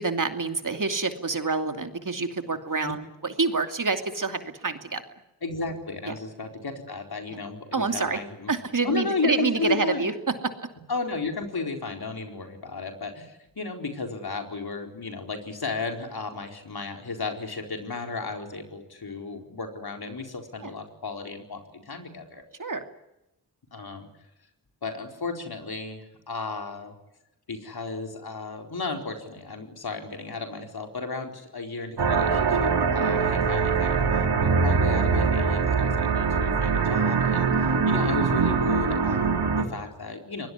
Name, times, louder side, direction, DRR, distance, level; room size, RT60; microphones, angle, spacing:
voice 1, 0.0-5.0 6.1-6.2 7.3-7.4 7.7-8.2 8.5-10.1 10.4-10.5 20.6-20.7 22.6-22.8, right 4 dB, 50° right, 6 dB, 2.7 m, -27 dB
voice 2, 5.4-8.5 8.8-10.1 10.9-22.4 23.7-24.1 24.8-26.9 27.5-40.5, left 4 dB, 65° left, 3 dB, 4.5 m, -34 dB
sound 1, 32.0-39.6, right 5 dB, 75° right, 2.8 m, -23 dB
24.0 x 20.5 x 9.8 m, 0.90 s
cardioid pair, 40°, 40 cm